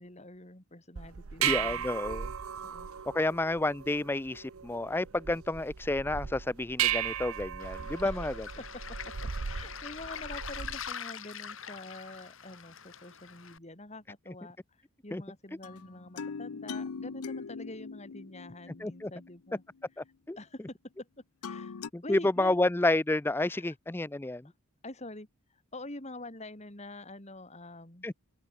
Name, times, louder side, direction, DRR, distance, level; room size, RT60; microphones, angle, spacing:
voice 1, 0.0-1.9 2.6-3.0 8.0-8.3 8.6-8.8 9.4-14.6 15.0-19.6 20.4-21.1 21.4-22.6 23.4-23.7 24.8-25.3 25.5-28.1, left 2 dB, 30° left, 3.2 m, -46 dB
sound 1, 1.0-10.9, right 9 dB, 70° right, 0.7 m, -36 dB
voice 2, 1.4-2.3 3.1-8.5 15.1-15.2 18.8-19.1 20.0-20.4 21.9-24.5 28.0-28.1, left 2 dB, 10° left, 0.4 m, -30 dB
Waves surf, 7.6-13.6, left 7 dB, 60° left, 3.5 m, -43 dB
sound 2, 15.6-19.6 21.4-21.9, left 5 dB, 85° left, 0.6 m, -41 dB
head